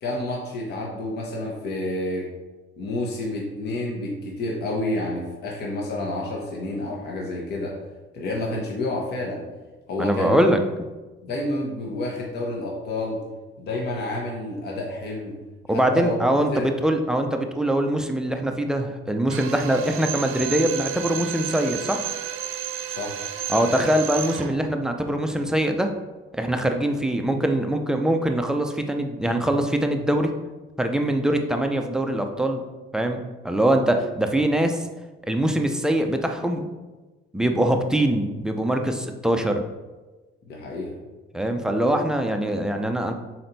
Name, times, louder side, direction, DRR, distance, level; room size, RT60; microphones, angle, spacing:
voice 1, 0.0-2.3 2.8-7.8 8.1-9.4 9.9-10.5 11.2-13.2 13.6-15.4 15.7-16.1 16.5-16.7 22.9-23.2 40.5-40.9, left 2 dB, 50° left, -2 dB, 1.0 m, -29 dB
voice 2, 10.0-10.6 15.7-22.1 23.5-25.9 26.3-30.3 30.8-32.6 32.9-34.8 35.2-36.7 37.3-39.6 41.3-43.1, right 1 dB, 5° right, 4 dB, 0.4 m, -23 dB
Drill, 19.3-24.6, right 10 dB, 80° right, 0.6 m, -32 dB
6.0 x 4.3 x 3.9 m, 1.2 s
cardioid pair, 170°, 21 cm